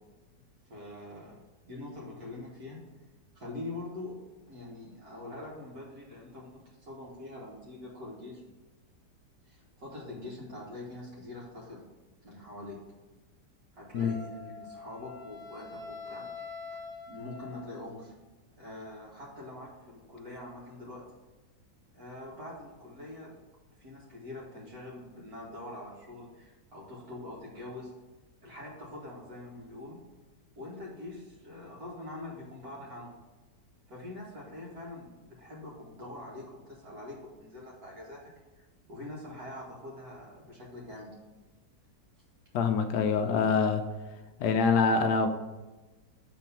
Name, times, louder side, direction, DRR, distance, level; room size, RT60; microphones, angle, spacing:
voice 1, 0.7-1.4 1.7-2.8 3.4-4.2 4.5-8.4 9.4-11.8 12.2-12.8 13.7-16.3 16.7-18.1 18.6-21.0 21.9-23.4 23.8-27.9 28.4-30.0 30.6-33.1 33.9-38.2 38.6-41.1, left 2 dB, 60° right, -5 dB, 1.9 m, -44 dB
Wind instrument woodwind instrument, 13.9-17.9, left 5 dB, 10° left, 0.6 m, -45 dB
voice 2, 42.5-43.8 44.4-45.3, left 5 dB, 75° left, 7 dB, 1.1 m, -25 dB
7.2 x 3.7 x 5.6 m, 1.2 s
omnidirectional pair, 1.9 m